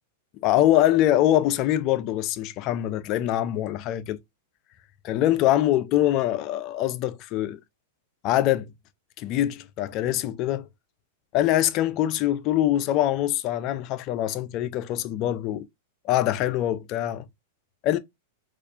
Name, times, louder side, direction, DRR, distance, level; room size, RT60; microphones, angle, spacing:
voice 1, 0.4-4.2 5.0-7.6 8.2-8.7 9.2-10.7 11.3-15.7 16.0-17.2 17.8-18.0, left 13 dB, 45° left, 0.4 m, -23 dB
4.1 x 2.4 x 2.7 m
hypercardioid pair, 105°, 0 cm